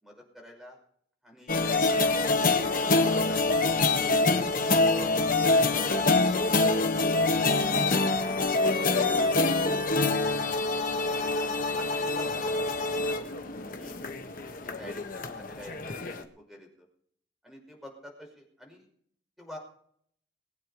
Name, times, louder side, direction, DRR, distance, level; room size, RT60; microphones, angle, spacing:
voice 1, 0.0-0.8 1.2-2.0 2.5-3.4 8.2-9.7 11.0-11.1 11.3-13.5 13.8-14.0 14.6-16.9 17.4-18.9 19.4-19.6, equal, ahead, 0 dB, 5.7 m, -49 dB
sound 1, 1.5-16.2, left 3 dB, 50° left, 1.6 m, -25 dB
22.0 x 8.9 x 5.0 m, 0.62 s
head